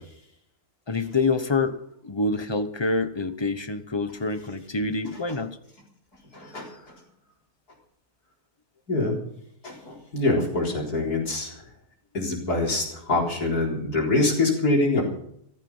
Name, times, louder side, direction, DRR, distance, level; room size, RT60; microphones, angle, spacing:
voice 1, 0.9-1.8 2.0-5.5, left 3 dB, 20° left, 10 dB, 1.0 m, -26 dB
voice 2, 6.3-6.7 8.9-9.2 9.6-11.5 12.1-15.0, left 2 dB, 90° left, -1 dB, 4.6 m, -24 dB
14.5 x 14.5 x 5.6 m, 0.71 s
omnidirectional pair, 1.6 m